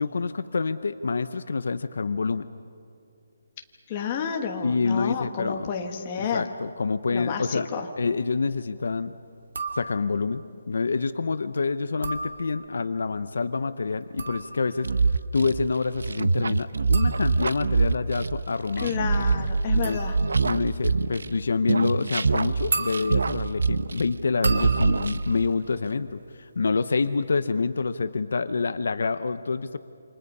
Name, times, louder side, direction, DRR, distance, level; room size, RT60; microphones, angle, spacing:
voice 1, 0.0-2.5 4.6-5.7 6.2-7.7 8.0-9.1 9.7-18.9 19.7-20.0 20.4-29.8, left 4 dB, 60° left, 12 dB, 0.7 m, -27 dB
voice 2, 3.9-6.5 7.1-7.9 18.8-20.2, left 7 dB, 15° left, 2 dB, 1.3 m, -30 dB
sound 1, 9.4-10.3 11.8-12.9 13.9-26.6 26.9-27.4, right 3 dB, 65° right, 2.3 m, -37 dB
sound 2, 14.8-21.4 21.7-24.2 24.4-25.5, right 4 dB, 85° right, 0.7 m, -24 dB
29.0 x 27.0 x 5.4 m, 2.5 s
hypercardioid pair, 180°, 0 cm